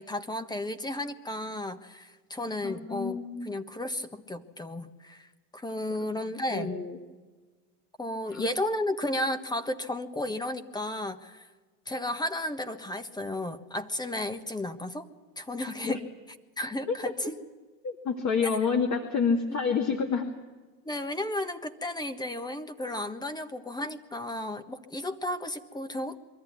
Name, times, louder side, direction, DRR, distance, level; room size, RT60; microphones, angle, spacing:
voice 1, 0.0-5.3 5.5-6.8 8.0-11.5 11.9-15.1 15.4-16.0 16.6-17.3 20.8-26.2, left 1 dB, 10° left, 10 dB, 1.3 m, -33 dB
voice 2, 2.6-3.5 6.5-7.0 8.3-8.5 15.8-16.0 16.9-17.0 17.8-20.3, left 5 dB, 40° left, 3 dB, 2.3 m, -28 dB
23.5 x 14.0 x 9.6 m, 1.3 s
supercardioid pair, 105°, 45 cm